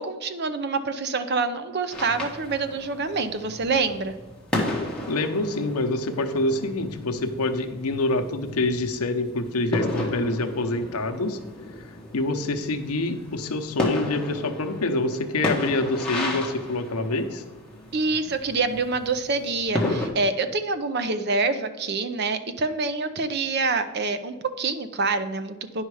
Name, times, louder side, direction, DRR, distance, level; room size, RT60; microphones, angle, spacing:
voice 1, 0.0-4.1 17.9-25.8, right 3 dB, 45° right, 10 dB, 0.6 m, -26 dB
sound 1, 1.9-20.1, left 1 dB, 5° left, 1.2 m, -33 dB
voice 2, 5.1-11.4 12.1-17.4, left 2 dB, 85° left, 6 dB, 0.8 m, -26 dB
9.7 x 5.5 x 4.8 m, 1.3 s
head